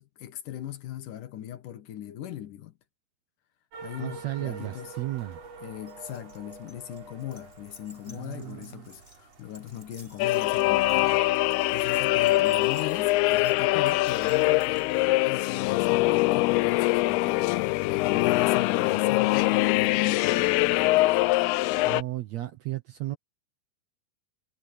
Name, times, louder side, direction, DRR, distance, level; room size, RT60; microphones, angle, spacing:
voice 1, 0.0-2.8 3.8-4.9 5.6-11.2 11.7-14.9 15.2-21.0, left 12 dB, 65° left, 2.8 m, -39 dB
sound 1, 3.7-11.4, right 4 dB, 45° right, 4.1 m, -47 dB
voice 2, 4.0-5.4 8.1-8.9 21.8-23.2, right 16 dB, 80° right, 1.5 m, -34 dB
Keys jangling, 5.9-15.1, right 1 dB, 10° right, 5.9 m, -54 dB
sound 2, 10.2-22.0, left 19 dB, 90° left, 2.6 m, -23 dB
omnidirectional pair, 4.5 m